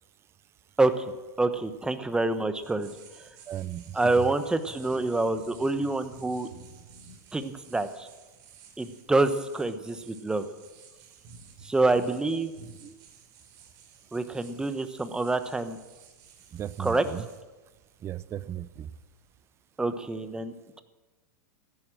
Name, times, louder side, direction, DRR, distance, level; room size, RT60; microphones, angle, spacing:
sound 1, 1.0-19.4, right 5 dB, 50° right, 3.6 m, -53 dB
voice 1, 1.4-2.9 3.2-3.3 3.9-6.5 7.3-8.1 8.8-10.5 11.6-12.5 14.1-15.8 16.8-17.0 19.8-20.8, right 2 dB, 10° right, 10 dB, 1.1 m, -27 dB
voice 2, 3.5-4.0 12.8-13.0 16.5-17.2 18.0-18.9, right 11 dB, 25° right, 18 dB, 0.6 m, -36 dB
14.5 x 11.0 x 7.6 m, 1.2 s
hypercardioid pair, 105°, 9 cm